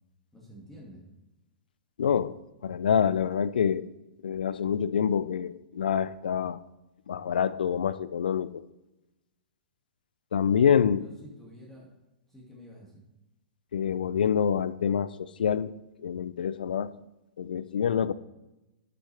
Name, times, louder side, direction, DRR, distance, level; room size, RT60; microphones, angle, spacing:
voice 1, 0.3-1.0 11.0-11.9 12.3-13.1 18.0-18.1, equal, 5° left, -5 dB, 2.4 m, -49 dB
voice 2, 2.0-3.9 4.2-6.6 7.1-8.7 10.3-11.0 13.7-15.7 16.0-16.9 17.4-18.1, left 8 dB, 80° left, 17 dB, 0.4 m, -26 dB
11.5 x 6.0 x 3.5 m, 0.99 s
hypercardioid pair, 115°, 5 cm